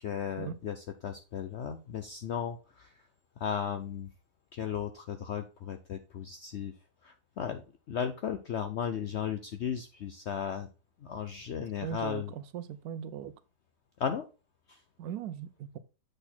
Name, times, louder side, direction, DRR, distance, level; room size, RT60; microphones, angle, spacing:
voice 1, 0.0-3.1 3.4-4.1 4.5-6.7 7.0-10.7 11.0-12.3 14.0-14.3 14.7-14.8, left 8 dB, 70° left, 0.6 m, -35 dB
voice 2, 11.8-13.3 15.0-15.8, right 9 dB, 70° right, 1.0 m, -39 dB
7.9 x 4.2 x 4.2 m
omnidirectional pair, 1.7 m